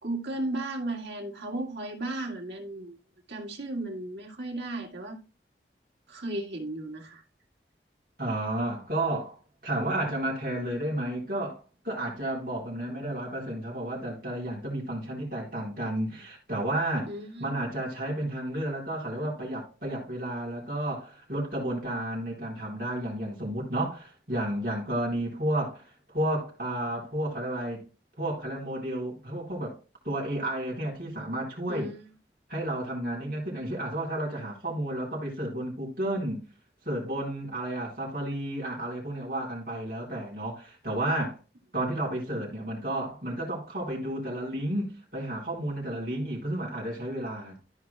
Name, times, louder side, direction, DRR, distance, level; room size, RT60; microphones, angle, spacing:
voice 1, 0.0-3.0 3.3-5.2 6.1-7.2 17.1-17.7 31.7-32.1 42.3-42.4, right 1 dB, 85° right, 2.3 m, -35 dB
voice 2, 8.2-17.1 17.4-27.8 28.2-29.8 30.0-31.9 32.5-36.4 36.8-41.4 41.7-47.6, right 1 dB, 55° right, 4.0 m, -32 dB
14.5 x 4.9 x 2.3 m
head